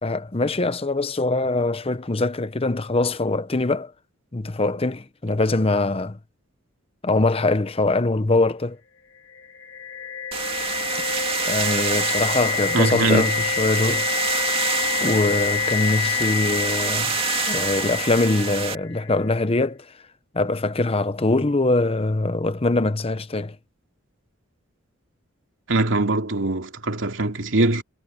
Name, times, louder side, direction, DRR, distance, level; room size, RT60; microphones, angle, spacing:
voice 1, 0.0-3.9 4.3-6.2 7.0-8.8 11.4-14.1 15.0-17.2 17.5-19.9 20.3-23.6, left 2 dB, 30° left, 0.8 m, -23 dB
sound 1, 9.3-19.2, left 7 dB, 70° left, 1.7 m, -27 dB
sound 2, 10.3-18.7, right 6 dB, 25° right, 2.1 m, -27 dB
voice 2, 12.7-13.3 25.7-27.8, right 2 dB, 65° right, 2.6 m, -22 dB
head